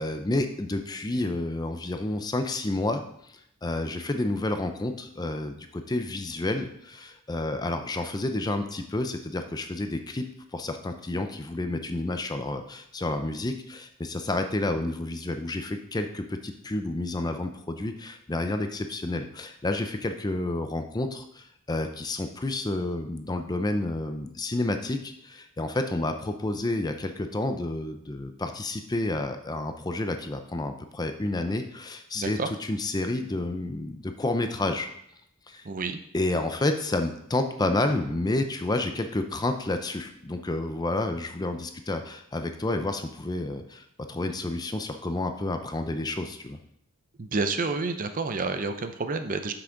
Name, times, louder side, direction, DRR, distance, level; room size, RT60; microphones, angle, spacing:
voice 1, 0.0-10.3 10.5-34.9 35.5-35.7 36.1-46.6, left 2 dB, 20° left, 7 dB, 0.5 m, -30 dB
voice 2, 32.1-32.5 35.6-36.0 47.2-49.5, right 4 dB, 40° right, 8 dB, 0.6 m, -29 dB
8.0 x 6.1 x 3.8 m, 0.72 s
head